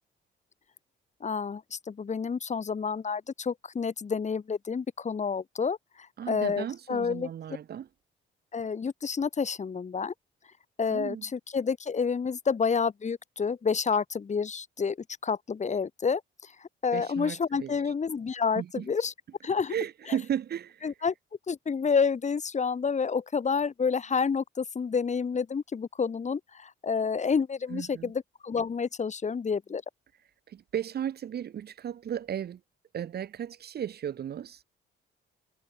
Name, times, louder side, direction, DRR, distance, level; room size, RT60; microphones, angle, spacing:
voice 1, 1.2-5.8 6.3-7.3 8.5-10.1 10.8-15.0 15.2-16.2 16.8-19.1 19.4-19.7 20.8-21.1 21.5-29.8, left 5 dB, 35° left, 2.0 m, -29 dB
voice 2, 6.2-7.9 10.9-11.2 16.9-17.8 18.6-18.9 19.7-20.9 27.7-28.1 30.5-32.6 32.9-34.6, right 9 dB, 55° right, 1.0 m, -35 dB
cardioid pair, 90°, 20 cm